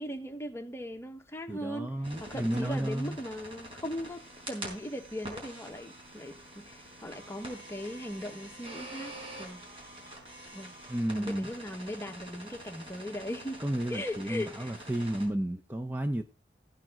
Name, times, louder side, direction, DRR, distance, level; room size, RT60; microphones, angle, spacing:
voice 1, 0.0-1.9 2.2-4.2 4.5-9.6 10.5-10.8 11.1-13.6 13.9-14.8, equal, 15° left, 1.2 m, -39 dB
voice 2, 1.5-3.2 10.9-11.5 13.6-16.2, right 1 dB, 10° right, 0.7 m, -32 dB
sound 1, 2.0-15.3, right 1 dB, 30° right, 4.8 m, -46 dB
15.0 x 9.2 x 3.8 m
head